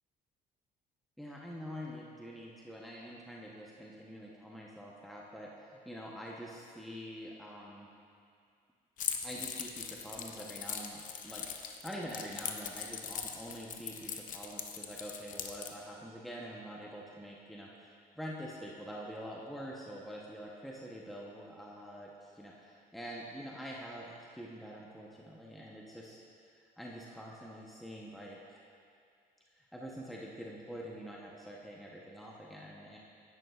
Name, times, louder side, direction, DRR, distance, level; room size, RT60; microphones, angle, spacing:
voice 1, 1.2-7.9 9.2-28.6 29.5-33.0, equal, ahead, -3 dB, 0.8 m, -46 dB
Keys jangling, 9.0-15.7, left 7 dB, 50° left, 0.7 m, -40 dB
10.5 x 9.6 x 2.3 m, 2.3 s
cardioid pair, 110°, 17 cm